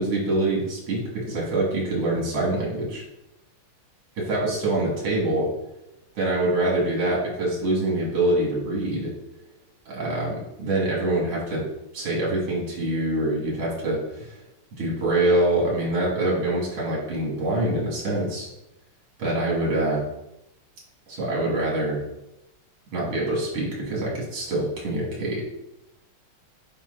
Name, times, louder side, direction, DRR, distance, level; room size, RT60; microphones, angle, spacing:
voice 1, 0.0-3.0 4.2-5.5 6.1-9.1 9.9-11.6 11.9-14.4 14.8-18.5 19.2-20.0 21.1-22.0 22.9-25.5, right 1 dB, 75° right, -4 dB, 3.6 m, -25 dB
9.6 x 4.8 x 4.2 m, 0.88 s
omnidirectional pair, 2.3 m